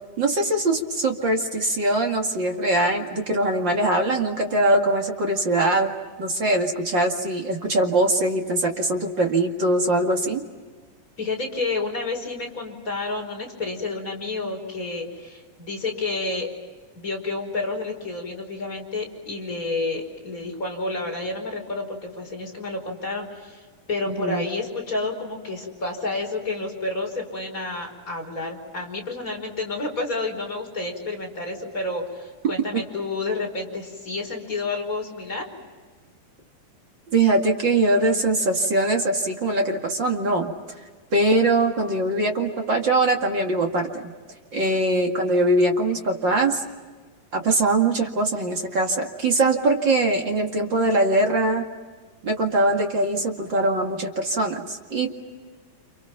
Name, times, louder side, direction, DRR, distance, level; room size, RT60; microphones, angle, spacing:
voice 1, 0.2-5.9 6.2-10.4 24.1-24.4 37.1-40.5 41.1-44.1 44.5-46.6 47.3-51.6 52.2-55.1, right 2 dB, 40° right, 2 dB, 2.4 m, -22 dB
voice 2, 11.2-16.5 17.0-35.5 44.6-44.8, left 3 dB, 25° left, 1 dB, 5.2 m, -30 dB
29.5 x 28.5 x 5.9 m, 1.5 s
omnidirectional pair, 3.9 m